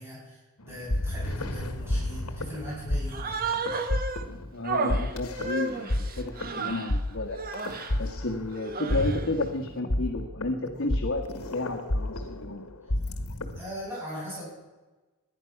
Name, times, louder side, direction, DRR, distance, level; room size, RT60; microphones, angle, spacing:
voice 1, 0.0-3.6 13.6-14.5, equal, 10° right, -7 dB, 7.3 m, -39 dB
sound 1, 0.6-13.6, left 1 dB, 80° left, 1.5 m, -31 dB
Human voice, 3.1-4.3 4.6-7.0 7.3-8.0 8.5-9.3, right 3 dB, 45° right, 1.2 m, -32 dB
voice 2, 4.5-7.4 8.0-12.6, left 2 dB, 60° left, 2 dB, 1.5 m, -32 dB
19.0 x 11.0 x 5.9 m, 1.2 s
head